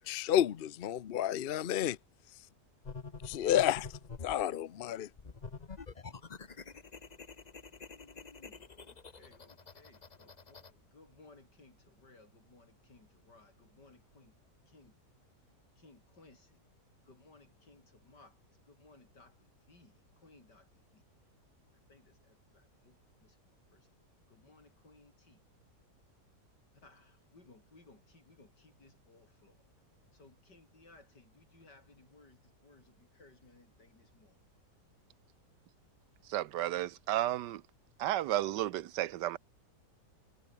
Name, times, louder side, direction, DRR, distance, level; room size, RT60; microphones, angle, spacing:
voice 1, 0.1-2.0 3.3-3.9 4.2-5.1, left 11 dB, 55° left, 0.6 m, -30 dB
sound 1, 2.8-4.4 5.2-10.7, left 5 dB, 30° left, 1.0 m, -47 dB
voice 2, 7.9-14.4 14.7-15.0 15.3-16.6 17.1-21.0 21.9-23.9 24.3-25.4 26.8-29.7 30.1-34.4, left 3 dB, 90° left, 6.0 m, -62 dB
voice 3, 36.2-37.6 38.0-39.4, right 14 dB, 90° right, 1.4 m, -33 dB
omnidirectional pair, 1.8 m